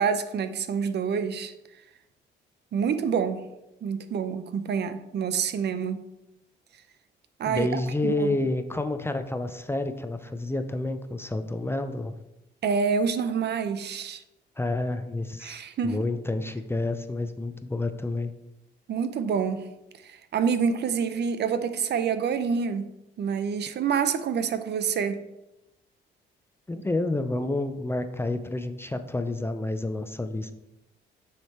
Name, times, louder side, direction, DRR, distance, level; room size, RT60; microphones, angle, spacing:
voice 1, 0.0-1.5 2.7-3.5 3.8-6.1 7.4-8.4 12.6-14.2 15.4-16.0 18.9-19.7 20.0-22.8 23.2-25.2, right 6 dB, 60° right, 11 dB, 0.6 m, -27 dB
voice 2, 7.5-12.1 14.6-18.3 26.7-30.5, left 2 dB, 10° left, 8 dB, 0.5 m, -29 dB
9.4 x 3.3 x 4.3 m, 0.93 s
cardioid pair, 90°, 20 cm